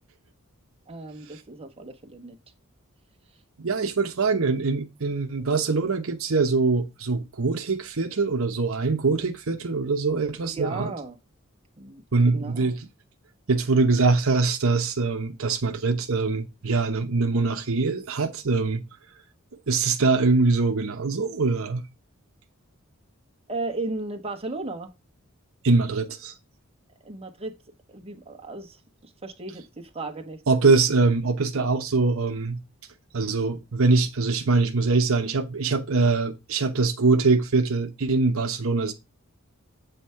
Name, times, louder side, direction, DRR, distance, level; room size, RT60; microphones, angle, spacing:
voice 1, 0.9-2.4 10.4-11.2 11.8-12.7 23.5-24.9 27.0-27.6 27.9-30.4, right 2 dB, 30° right, 1.2 m, -35 dB
voice 2, 3.6-10.9 12.1-12.9 13.5-18.8 19.7-21.8 25.6-26.3 30.5-32.6 33.1-38.9, right 3 dB, 70° right, 0.9 m, -23 dB
8.1 x 3.5 x 5.6 m
head